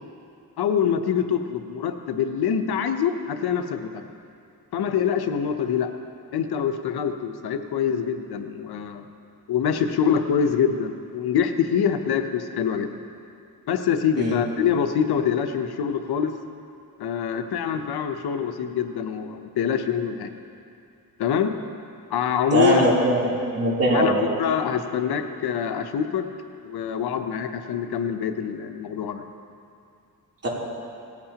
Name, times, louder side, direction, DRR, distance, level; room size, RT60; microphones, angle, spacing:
voice 1, 0.6-4.0 4.7-5.9 6.3-9.0 9.5-12.9 13.7-16.3 17.0-20.3 21.2-21.5 22.1-22.8 23.9-26.2 26.6-29.2, left 7 dB, 85° left, 7 dB, 0.9 m, -25 dB
voice 2, 22.5-23.3 23.5-24.2 30.4-30.5, right 1 dB, 40° right, -5 dB, 3.2 m, -20 dB
18.0 x 15.0 x 2.9 m, 2.5 s
cardioid pair, 105°, 37 cm